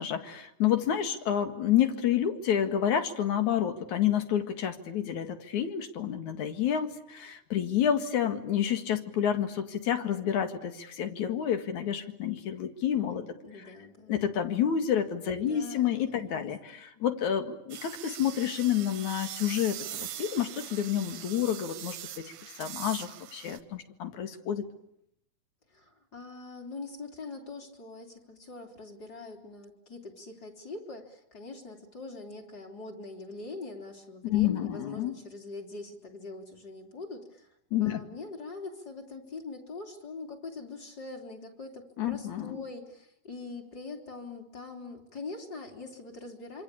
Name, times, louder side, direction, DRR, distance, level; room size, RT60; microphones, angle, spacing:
voice 1, 0.0-13.2 14.1-22.0 22.6-24.7 34.2-35.1 37.7-38.0 42.0-42.6, left 9 dB, 65° left, 7 dB, 3.2 m, -29 dB
voice 2, 13.1-14.2 15.3-16.5 16.9-17.0 25.7-37.5 37.8-46.6, left 3 dB, 30° left, 1 dB, 3.9 m, -43 dB
sound 1, 17.7-23.6, right 12 dB, 85° right, 2.8 m, -42 dB
26.5 x 26.0 x 8.5 m, 0.77 s
omnidirectional pair, 3.7 m